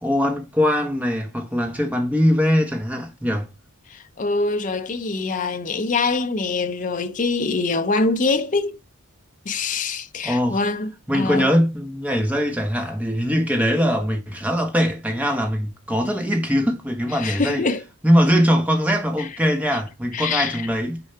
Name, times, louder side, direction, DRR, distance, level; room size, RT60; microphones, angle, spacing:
voice 1, 0.0-3.5 10.2-10.6 11.1-17.6 18.0-21.0, equal, 5° right, 1.0 m, -21 dB
voice 2, 3.9-8.8 9.5-11.5 17.1-17.8 19.2-19.3 20.1-20.6, left 3 dB, 35° left, 0.6 m, -24 dB
6.7 x 4.6 x 5.6 m
head